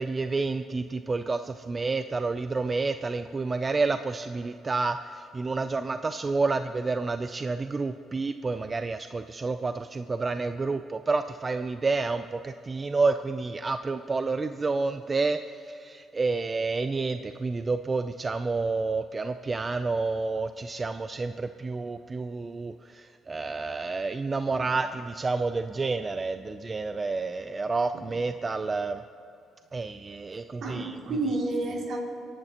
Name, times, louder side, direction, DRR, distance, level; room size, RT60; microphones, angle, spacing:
voice 1, 0.0-15.4 15.7-29.0 29.7-31.0, right 3 dB, 30° right, 9 dB, 0.4 m, -29 dB
voice 2, 30.6-32.0, right 2 dB, 65° right, -1 dB, 2.7 m, -31 dB
27.5 x 11.0 x 3.0 m, 2.6 s
cardioid pair, 90°, 0 cm